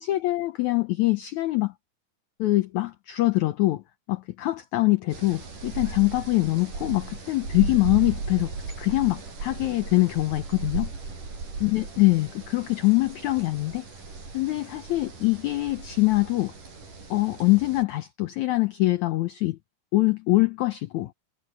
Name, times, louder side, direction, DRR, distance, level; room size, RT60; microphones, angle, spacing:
voice 1, 0.0-1.7 2.4-3.8 4.1-8.5 8.8-10.9 11.6-13.9 14.3-16.5 17.1-19.6 19.9-21.1, left 19 dB, 85° left, 1.6 m, -24 dB
sound 1, 5.1-17.8, right 4 dB, 55° right, 8.6 m, -37 dB
omnidirectional pair, 4.3 m